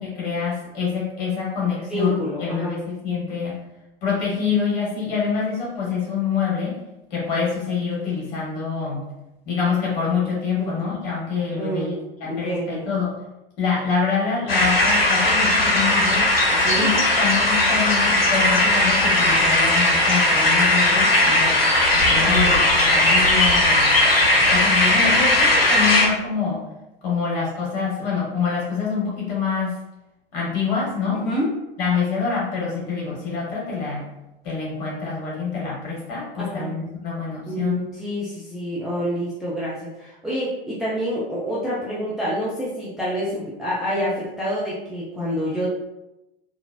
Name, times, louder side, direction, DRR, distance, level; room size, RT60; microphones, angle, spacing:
voice 1, 0.0-3.7 4.0-6.8 7.1-9.0 9.4-11.9 12.2-13.2 13.6-16.3 16.8-21.6 21.9-23.9 24.4-26.6 27.0-29.8 30.3-31.2 31.8-34.0 34.4-37.9, left 5 dB, 45° left, -4 dB, 1.5 m, -26 dB
voice 2, 1.7-2.8 10.6-10.8 11.5-12.0 12.2-12.9 16.5-16.9 22.2-22.6 23.0-23.1 31.1-31.5 36.4-36.7 37.5-45.7, equal, ahead, -8 dB, 0.5 m, -27 dB
sound 1, 14.5-26.1, left 1 dB, 75° left, 0.7 m, -18 dB
3.7 x 2.5 x 2.2 m, 0.95 s
figure-of-eight pair, 90°, 29 cm